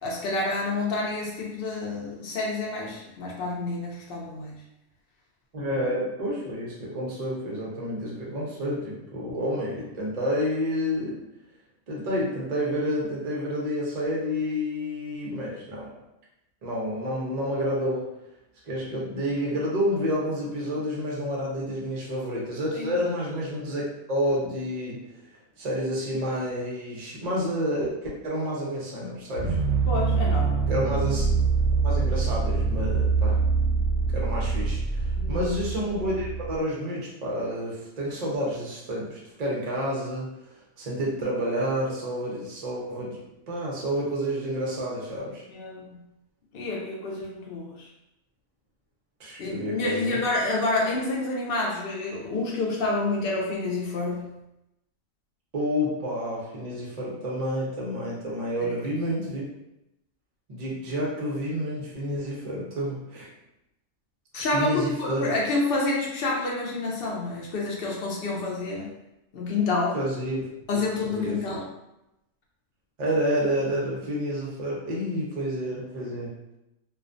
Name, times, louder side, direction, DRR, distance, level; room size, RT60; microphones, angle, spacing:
voice 1, 0.0-4.6 22.7-22.9 29.9-30.7 35.2-35.5 45.5-46.0 46.5-47.9 49.4-54.3 58.6-59.2 64.3-68.9 69.3-70.0 70.7-71.6, left 2 dB, 60° left, -3 dB, 0.6 m, -28 dB
voice 2, 5.5-11.2 11.9-15.9 16.6-18.1 18.6-23.8 24.1-25.0 25.6-27.9 28.2-29.6 30.7-31.2 31.8-33.4 34.1-40.3 40.8-43.2 43.5-45.4 49.2-50.2 55.5-59.4 60.5-63.3 64.5-65.3 69.9-70.5 71.0-71.6 73.0-76.3, equal, 45° right, -4 dB, 0.5 m, -29 dB
sound 1, 29.4-36.6, right 4 dB, 65° right, 0.9 m, -24 dB
2.4 x 2.1 x 2.5 m, 0.89 s
omnidirectional pair, 1.4 m